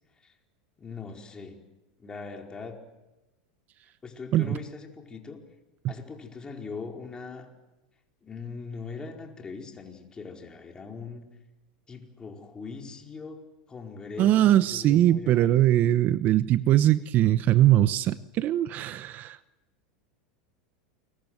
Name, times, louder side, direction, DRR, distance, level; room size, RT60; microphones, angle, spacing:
voice 1, 0.8-1.6 2.0-2.8 4.0-5.4 5.9-7.5 8.2-11.3 11.9-15.7, left 4 dB, 20° left, 2 dB, 4.8 m, -41 dB
voice 2, 14.2-19.4, right 13 dB, 45° right, 15 dB, 0.9 m, -21 dB
29.5 x 22.5 x 7.9 m, 1.1 s
hypercardioid pair, 110°, 4 cm